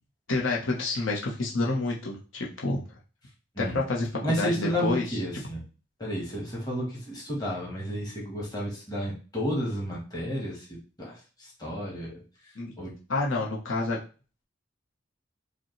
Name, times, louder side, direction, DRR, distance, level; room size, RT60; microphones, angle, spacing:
voice 1, 0.3-2.8 3.6-4.1 4.4-5.0 12.5-12.7 13.1-14.0, left 2 dB, 80° left, -3 dB, 1.0 m, -28 dB
voice 2, 4.2-5.6 6.0-12.2 12.8-12.9, equal, 20° left, -3 dB, 1.4 m, -32 dB
5.0 x 2.4 x 3.1 m, 0.35 s
head